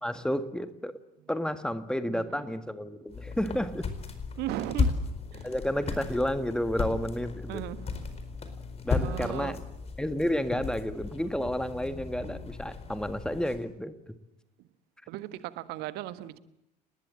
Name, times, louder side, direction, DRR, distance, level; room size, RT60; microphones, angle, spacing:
voice 1, 0.0-1.0 1.3-3.9 5.4-7.6 8.8-9.6 10.0-14.1, equal, 5° left, 1.8 m, -31 dB
voice 2, 2.1-2.5 4.4-4.9 7.5-8.0 9.0-9.7 15.1-16.4, right 14 dB, 50° right, 1.5 m, -36 dB
sound 1, 3.1-13.6, left 4 dB, 30° left, 4.5 m, -35 dB
29.5 x 20.5 x 7.7 m
figure-of-eight pair, 60°, 21 cm